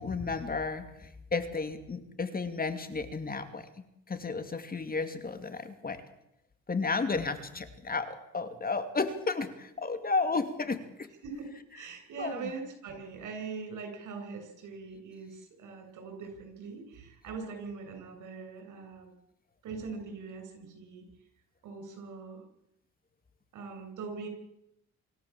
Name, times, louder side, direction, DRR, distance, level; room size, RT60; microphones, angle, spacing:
voice 1, 0.0-3.7 4.1-6.0 6.7-11.1 12.2-12.5, left 4 dB, 30° left, 9 dB, 2.6 m, -33 dB
voice 2, 11.7-19.1 19.6-21.0 21.6-22.4 23.5-24.3, right 5 dB, 80° right, 5 dB, 7.8 m, -42 dB
26.0 x 14.5 x 7.5 m, 0.82 s
cardioid pair, 90°, 30 cm